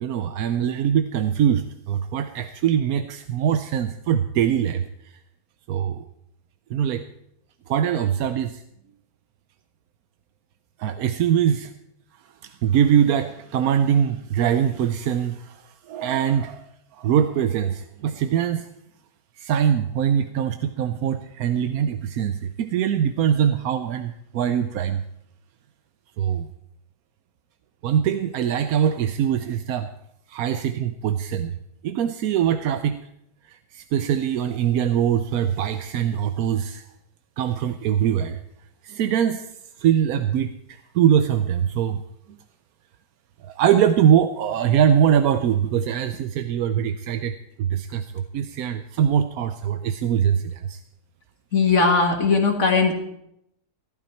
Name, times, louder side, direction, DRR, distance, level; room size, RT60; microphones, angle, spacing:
voice 1, 0.0-4.8 5.7-6.0 6.7-7.0 7.7-8.6 10.8-11.7 12.4-15.6 15.9-16.7 17.0-18.7 19.4-25.0 26.2-26.5 27.8-29.9 30.3-31.6 31.8-33.0 33.5-36.8 37.4-38.4 38.8-39.5 39.8-40.5 40.9-42.0 43.5-50.8, right 9 dB, 70° right, 9 dB, 1.0 m, -22 dB
voice 2, 51.5-52.9, left 4 dB, 45° left, 2 dB, 2.1 m, -19 dB
15.0 x 12.0 x 4.4 m, 0.78 s
omnidirectional pair, 1.8 m